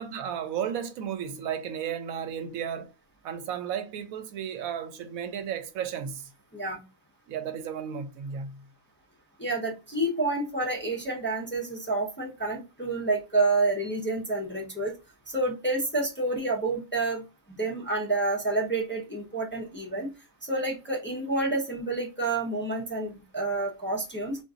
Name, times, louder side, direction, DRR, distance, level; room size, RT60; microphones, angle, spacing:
voice 1, 0.0-2.9 3.2-6.3 7.3-8.6, right 8 dB, 85° right, 1.0 m, -34 dB
voice 2, 9.4-14.9 15.3-17.2 17.5-20.1 20.4-24.4, right 2 dB, 10° left, 0.6 m, -29 dB
3.9 x 2.6 x 2.4 m
omnidirectional pair, 1.4 m